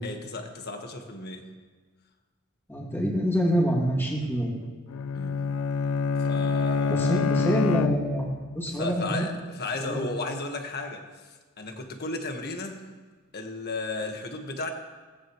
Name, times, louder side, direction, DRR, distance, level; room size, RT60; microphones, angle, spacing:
voice 1, 0.0-1.5 5.1-5.5 6.2-7.3 8.7-12.9 13.3-14.7, left 2 dB, 50° left, 4 dB, 1.5 m, -34 dB
voice 2, 2.7-4.5 6.9-9.3 9.8-10.0, equal, 10° left, -3 dB, 2.5 m, -26 dB
Bowed string instrument, 4.9-8.5, left 5 dB, 65° left, 0.4 m, -26 dB
18.5 x 15.0 x 3.1 m, 1.4 s
head